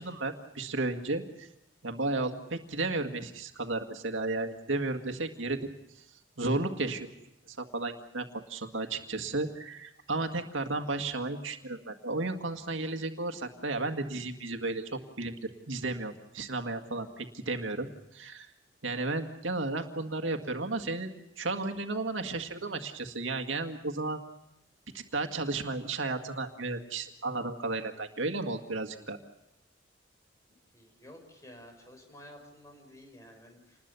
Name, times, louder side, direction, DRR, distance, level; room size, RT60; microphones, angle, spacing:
voice 1, 0.0-1.5 1.8-5.6 6.4-7.1 7.5-18.5 18.8-24.2 24.9-29.2, right 2 dB, 80° right, 5 dB, 1.9 m, -33 dB
voice 2, 30.7-33.8, left 1 dB, 15° left, 3 dB, 5.7 m, -52 dB
28.0 x 20.5 x 7.0 m, 0.85 s
head